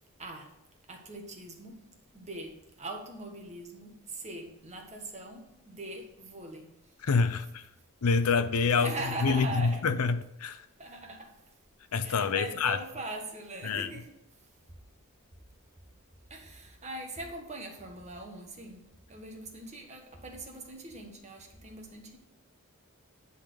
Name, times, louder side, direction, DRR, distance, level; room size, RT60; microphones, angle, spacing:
voice 1, 0.2-0.5 0.9-1.8 2.1-6.7 8.7-9.8 10.8-11.4 12.0-14.1 16.3-22.2, right 2 dB, 30° right, 1.5 m, -41 dB
voice 2, 7.0-7.7 8.0-8.9 9.2-10.6 11.9-12.8 13.6-13.9, left 5 dB, 80° left, 0.6 m, -27 dB
10.0 x 4.1 x 6.8 m
head